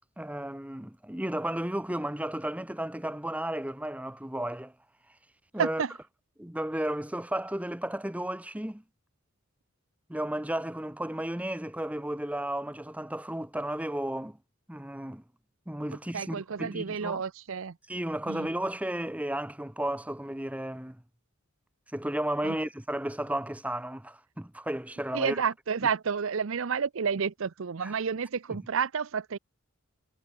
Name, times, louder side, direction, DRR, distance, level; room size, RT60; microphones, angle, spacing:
voice 1, 0.2-4.7 5.5-5.8 6.4-8.8 10.1-14.4 14.7-15.2 15.7-17.2 17.9-21.0 21.9-25.4 27.8-27.9, right 1 dB, 5° right, 0.9 m, -33 dB
voice 2, 5.6-5.9 16.1-17.8 18.3-18.5 22.4-22.6 25.1-29.4, right 6 dB, 60° right, 0.5 m, -30 dB
head